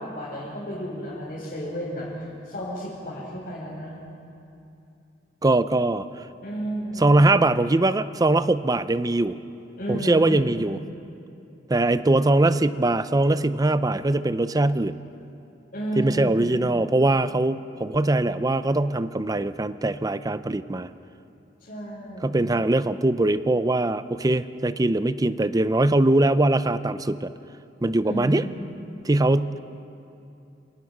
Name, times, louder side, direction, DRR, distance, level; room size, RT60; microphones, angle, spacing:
voice 1, 0.0-2.1 2.4-3.9 6.4-7.2 9.8-10.5 15.7-16.6 21.6-22.5 28.0-28.7, equal, 50° left, -8 dB, 5.1 m, -32 dB
voice 2, 5.4-6.3 7.0-9.4 9.9-10.8 11.7-15.0 16.0-20.9 22.2-27.3 27.8-28.5 29.0-29.6, right 2 dB, 20° right, 14 dB, 0.5 m, -22 dB
28.0 x 18.0 x 6.1 m, 2.7 s
head